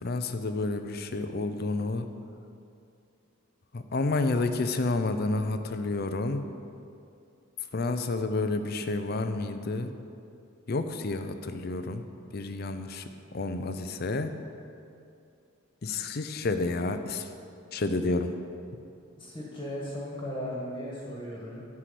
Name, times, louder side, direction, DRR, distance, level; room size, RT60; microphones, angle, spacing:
voice 1, 0.0-2.1 3.7-6.4 7.7-9.9 10.7-12.0 12.3-13.0 13.3-14.3 15.8-17.3 17.7-18.3, left 3 dB, 45° left, 8 dB, 0.5 m, -30 dB
voice 2, 19.2-21.6, equal, 15° left, -5 dB, 1.6 m, -36 dB
10.0 x 4.8 x 7.6 m, 2.5 s
head